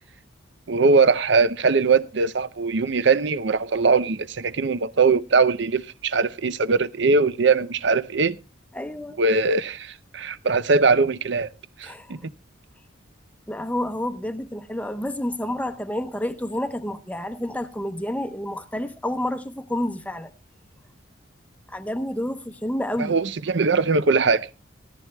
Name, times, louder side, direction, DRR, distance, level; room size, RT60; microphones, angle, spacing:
voice 1, 0.7-8.4 9.2-11.5 11.8-12.2 23.1-24.5, right 4 dB, 60° right, 0.6 m, -21 dB
voice 2, 8.7-9.2 11.8-12.2 13.5-20.3 21.7-23.1, left 1 dB, 5° left, 0.8 m, -29 dB
18.5 x 14.0 x 2.3 m
head